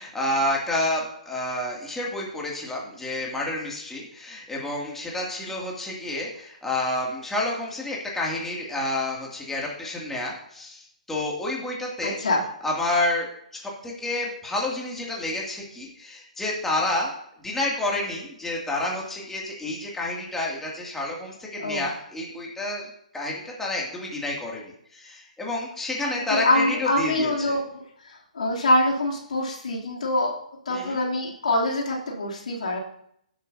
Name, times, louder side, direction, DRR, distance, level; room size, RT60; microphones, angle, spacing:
voice 1, 0.0-12.2 12.6-13.3 13.5-17.1 17.4-22.9 23.1-24.6 24.9-27.6 30.7-31.0, left 2 dB, 5° left, -3 dB, 2.4 m, -29 dB
voice 2, 12.0-12.4 21.6-21.9 26.3-30.3 30.7-32.8, left 1 dB, 65° left, -2 dB, 2.9 m, -25 dB
16.5 x 8.5 x 2.8 m, 0.70 s
figure-of-eight pair, 130°, 4 cm